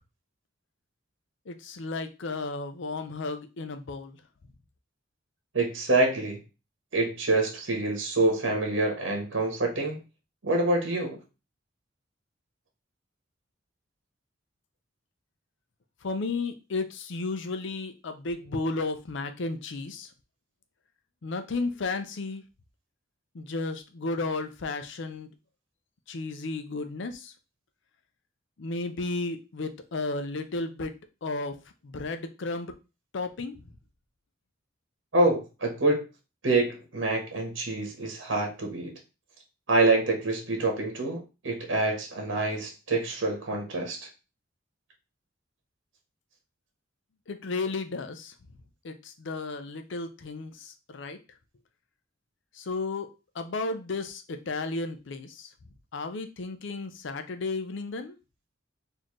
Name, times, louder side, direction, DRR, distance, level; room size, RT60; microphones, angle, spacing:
voice 1, 1.5-4.2 16.0-20.1 21.2-22.4 23.3-25.3 26.1-27.3 28.6-31.6 31.8-32.7 33.1-33.7 47.3-48.3 48.8-51.2 52.5-53.1 53.3-55.5 55.9-58.2, left 3 dB, 70° left, 8 dB, 0.5 m, -33 dB
voice 2, 5.5-6.4 6.9-10.0 10.4-11.2 35.1-36.0 36.4-38.9 39.7-44.1, right 2 dB, 75° right, 3 dB, 1.2 m, -26 dB
4.1 x 2.7 x 3.1 m, 0.29 s
head